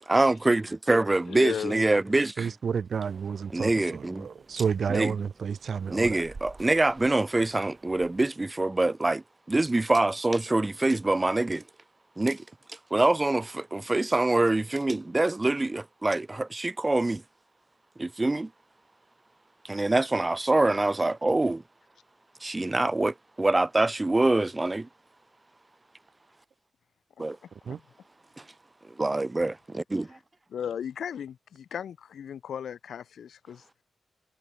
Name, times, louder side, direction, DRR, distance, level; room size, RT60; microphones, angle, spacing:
voice 1, 0.1-2.5 3.5-4.3 4.9-5.1 5.9-11.6 12.2-12.4 12.7-17.2 18.0-18.5 19.6-21.6 22.4-24.9 27.2-27.4 28.4-28.5 28.9-30.2, right 2 dB, 20° right, 0.4 m, -25 dB
voice 2, 1.3-1.8 27.7-27.8 30.5-33.6, left 8 dB, 80° left, 0.4 m, -35 dB
voice 3, 2.4-6.2 27.7-27.8, right 6 dB, 65° right, 1.0 m, -30 dB
sound 1, 3.0-8.3, right 3 dB, 35° right, 2.0 m, -52 dB
cardioid pair, 80°, 0 cm